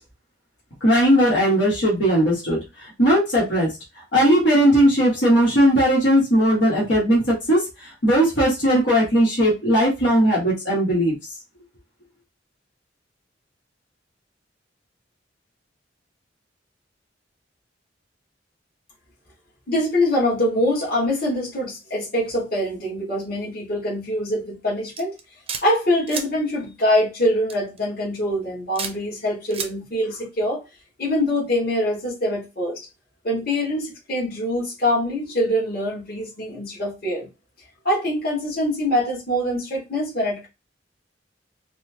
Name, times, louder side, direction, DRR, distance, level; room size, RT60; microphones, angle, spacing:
voice 1, 0.8-11.1, equal, 80° left, 1.5 m, -18 dB
voice 2, 19.7-25.1 25.6-30.6 31.0-32.8 33.2-37.3 37.8-40.5, left 1 dB, 55° left, 1.9 m, -24 dB
sound 1, 25.0-25.6 26.1-26.3 27.5-27.8 28.8-28.9 29.5-29.7, right 6 dB, 30° right, 0.6 m, -30 dB
4.1 x 2.3 x 2.8 m
head